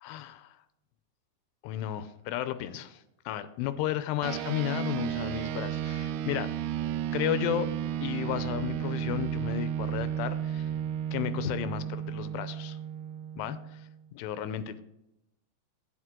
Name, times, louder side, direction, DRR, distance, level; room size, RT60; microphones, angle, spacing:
voice 1, 0.0-0.5 1.6-6.5 7.1-7.7 8.0-10.7 11.1-12.8 13.4-13.8 14.1-14.8, left 12 dB, 80° left, 12 dB, 2.7 m, -33 dB
sound 1, 4.2-14.0, right 10 dB, 80° right, 2.3 m, -33 dB
12.5 x 9.6 x 3.7 m, 0.88 s
omnidirectional pair, 5.0 m